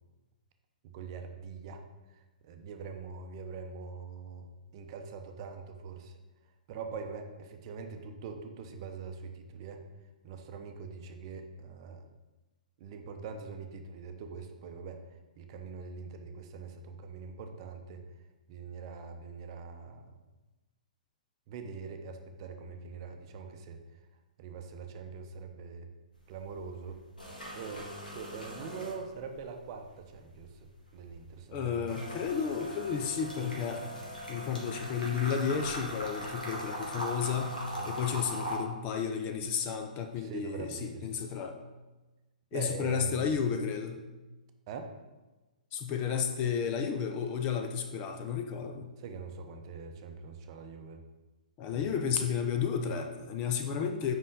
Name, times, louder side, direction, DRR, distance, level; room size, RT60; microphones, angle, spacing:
voice 1, 0.8-1.8 2.1-6.2 6.7-9.8 10.2-12.1 12.8-15.0 15.4-18.0 18.5-20.2 21.5-23.8 24.4-25.9 26.3-27.0 27.5-31.9 37.8-37.9 40.2-41.2 42.5-43.2 44.7-44.9 49.0-51.0 51.7-52.0, right 5 dB, 40° right, 5 dB, 0.8 m, -43 dB
sound 1, 26.1-26.6 26.9-29.5 29.8-38.6, equal, 85° left, 1.9 m, -40 dB
voice 2, 31.5-33.9 34.3-41.6 42.5-44.0 45.7-48.9 51.6-54.1, left 7 dB, 30° left, 5 dB, 0.6 m, -32 dB
7.5 x 5.5 x 3.7 m, 1.1 s
figure-of-eight pair, 120°, 5 cm